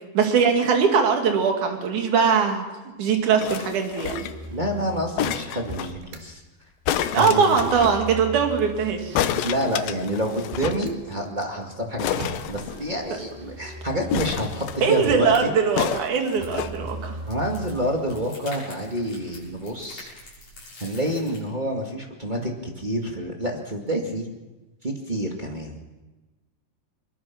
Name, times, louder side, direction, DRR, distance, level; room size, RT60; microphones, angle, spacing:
voice 1, 0.0-2.6 3.0-4.3 7.1-9.2 14.8-17.2, right 6 dB, 55° right, 3 dB, 3.7 m, -21 dB
sound 1, 3.4-4.5 5.2-5.9 6.9-8.0 9.2-10.9 11.1-11.2 11.4-11.6 12.0-13.2 14.1-15.0 15.8-16.7 17.5-17.6, left 11 dB, 75° left, 2.5 m, -29 dB
Motor vehicle (road), 4.0-6.2 7.4-11.0 12.1-15.5 16.3-18.3, right 3 dB, 85° right, 4.0 m, -39 dB
voice 2, 4.5-6.4 7.1-7.6 9.4-15.5 17.3-20.1 20.8-24.3 24.8-25.8, equal, 25° right, 0 dB, 1.1 m, -28 dB
sound 2, 16.0-21.4, left 2 dB, 45° left, 8.4 m, -46 dB
23.0 x 22.5 x 6.1 m, 1.1 s
omnidirectional pair, 4.6 m